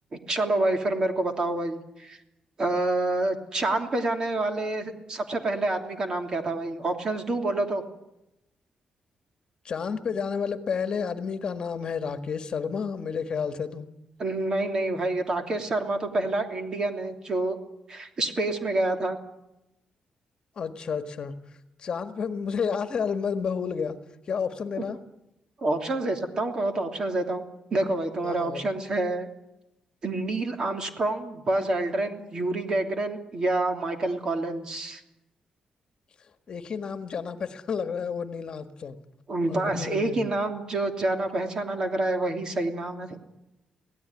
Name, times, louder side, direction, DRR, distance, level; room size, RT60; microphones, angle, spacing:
voice 1, 0.1-2.2 2.6-7.8 14.2-17.6 17.9-19.2 25.6-27.4 27.7-29.3 30.0-35.0 39.3-43.2, right 2 dB, 35° right, 4 dB, 3.0 m, -27 dB
voice 2, 9.6-13.9 20.6-21.3 21.8-24.0 24.3-25.0 28.2-28.6 36.5-39.0 39.5-40.2, left 6 dB, 45° left, 8 dB, 1.6 m, -31 dB
24.5 x 17.5 x 9.6 m, 0.90 s
cardioid pair, 145°, 2 cm